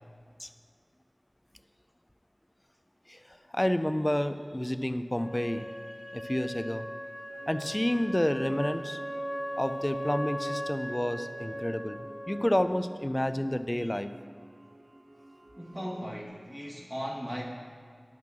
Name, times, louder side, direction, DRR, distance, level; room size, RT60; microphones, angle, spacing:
voice 1, 3.1-5.7 6.1-6.8 7.5-9.0 9.6-12.0 12.3-14.1, left 1 dB, 25° left, 10 dB, 0.5 m, -29 dB
Wind instrument woodwind instrument, 5.1-12.9, equal, 55° left, 1.2 m, -38 dB
sound 1, 7.3-16.2, right 1 dB, 45° right, 0.7 m, -51 dB
voice 2, 15.6-17.4, equal, 10° right, -3 dB, 1.1 m, -37 dB
10.5 x 6.0 x 6.1 m, 2.1 s
wide cardioid pair, 50°, 0 cm